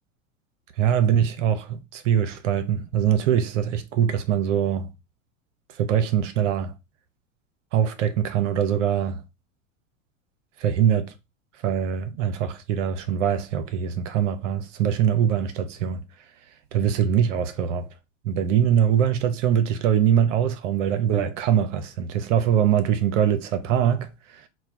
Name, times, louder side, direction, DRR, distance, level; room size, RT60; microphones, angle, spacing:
voice 1, 0.8-4.9 5.7-6.7 7.7-9.2 10.6-11.1 11.6-16.0 16.7-17.9 18.2-24.5, right 9 dB, 65° right, 0.8 m, -23 dB
4.3 x 2.2 x 4.3 m
hypercardioid pair, 100°, 39 cm